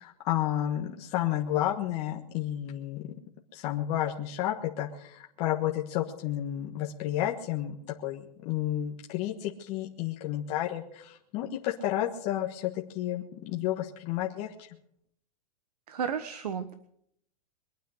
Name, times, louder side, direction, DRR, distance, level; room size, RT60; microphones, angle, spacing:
voice 1, 0.0-3.1 3.5-7.7 8.0-14.7, left 12 dB, 30° left, 0 dB, 1.4 m, -31 dB
voice 2, 15.9-16.7, right 7 dB, 85° right, 11 dB, 1.5 m, -33 dB
23.0 x 9.2 x 6.5 m, 0.71 s
hypercardioid pair, 160°, 20 cm